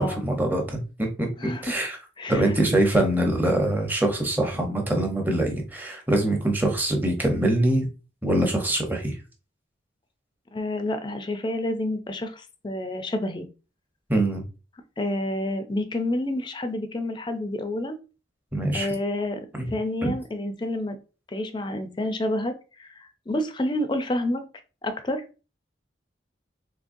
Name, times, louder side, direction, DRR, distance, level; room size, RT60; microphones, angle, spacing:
voice 1, 0.0-2.0 2.3-7.9 8.2-9.2 14.1-14.4 18.5-18.9 19.6-19.7 20.0-20.1, right 1 dB, 10° right, 0.7 m, -24 dB
voice 2, 10.5-13.5 15.0-18.0 18.7-19.5 19.7-21.0 21.3-22.5 22.8-24.4 24.8-25.2, left 1 dB, 25° left, 0.4 m, -29 dB
3.7 x 3.2 x 2.6 m
head